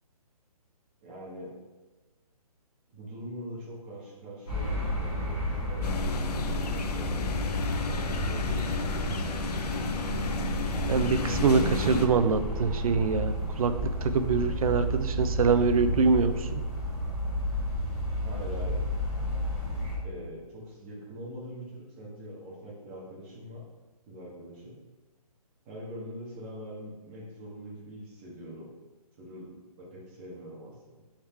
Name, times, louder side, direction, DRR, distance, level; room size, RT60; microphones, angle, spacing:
voice 1, 1.0-1.6 2.9-5.9 6.3-7.6 8.0-8.8 18.0-18.8 20.0-23.6 24.1-24.8 25.6-28.7 29.2-31.0, equal, 20° right, -4 dB, 1.0 m, -43 dB
sound 1, 4.5-20.0, equal, 5° left, 0.3 m, -32 dB
sound 2, 5.8-12.1, left 4 dB, 85° left, 0.5 m, -32 dB
voice 2, 10.9-16.6, right 5 dB, 65° right, 10 dB, 0.4 m, -25 dB
3.6 x 3.2 x 4.3 m, 1.2 s
hypercardioid pair, 165°, 20 cm